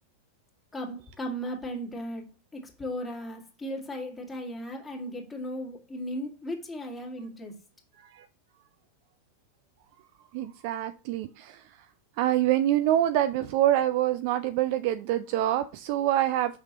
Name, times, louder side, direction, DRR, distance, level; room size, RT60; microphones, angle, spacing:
voice 1, 0.7-7.6, equal, 10° left, 2.0 m, -36 dB
voice 2, 10.3-11.8 12.2-16.6, right 13 dB, 45° right, 0.4 m, -26 dB
6.5 x 5.6 x 2.9 m
figure-of-eight pair, 90°, 0 cm